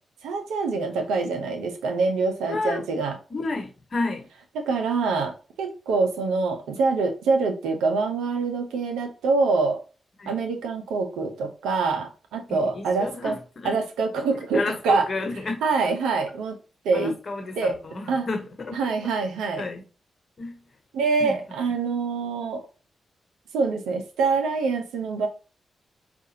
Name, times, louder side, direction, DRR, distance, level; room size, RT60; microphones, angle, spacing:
voice 1, 0.2-3.2 4.6-9.8 10.3-13.4 13.6-15.0 15.6-16.5 16.8-17.2 17.6-17.8 18.1-18.3 18.8-19.6 20.9-22.6 23.5-25.3, right 4 dB, 85° right, 0.7 m, -25 dB
voice 2, 2.5-2.8 3.3-4.3 10.2-10.3 12.5-13.8 14.5-15.6 16.9-19.1 19.6-19.8 20.4-20.7 21.2-21.4, left 3 dB, 50° left, 1.0 m, -31 dB
4.8 x 2.6 x 2.7 m
supercardioid pair, 45°, 0 cm